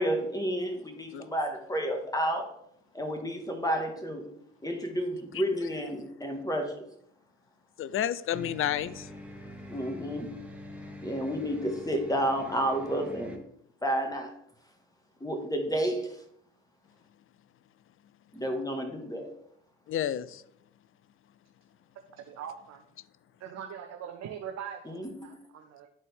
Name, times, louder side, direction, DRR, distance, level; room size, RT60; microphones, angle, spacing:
voice 1, 0.0-2.5 2.9-4.3 4.6-6.8 9.7-10.3 11.0-13.4 13.8-14.3 15.2-16.2 18.3-19.3 24.9-25.3, equal, 10° left, 3 dB, 1.8 m, -31 dB
voice 2, 7.8-9.1 19.9-20.4, left 11 dB, 45° left, 16 dB, 0.5 m, -31 dB
sound 1, 8.3-13.4, left 1 dB, 5° right, 1.5 m, -45 dB
voice 3, 22.2-22.8 23.4-25.9, right 8 dB, 60° right, 5 dB, 0.8 m, -42 dB
10.5 x 4.2 x 3.5 m, 0.71 s
hypercardioid pair, 50°, 30 cm